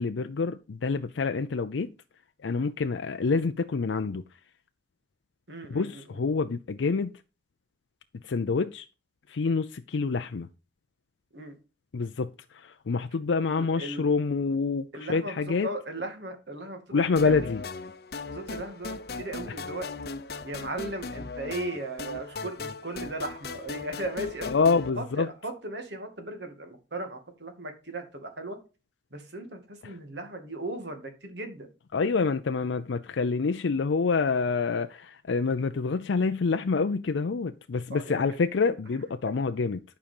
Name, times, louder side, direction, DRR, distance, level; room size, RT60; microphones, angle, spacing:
voice 1, 0.0-1.9 2.4-4.2 5.7-7.1 8.1-8.9 9.3-10.5 11.9-15.7 16.9-17.6 19.5-19.6 24.4-25.3 29.8-29.9 31.9-39.8, left 4 dB, 90° left, 0.5 m, -27 dB
voice 2, 5.5-6.0 11.3-11.6 13.4-14.1 14.9-17.5 18.3-19.9 20.4-24.5 25.0-28.6 29.1-31.7 37.9-38.4, right 1 dB, 70° right, 2.3 m, -37 dB
sound 1, 17.2-24.9, left 4 dB, 55° left, 0.7 m, -38 dB
11.5 x 5.3 x 5.3 m
head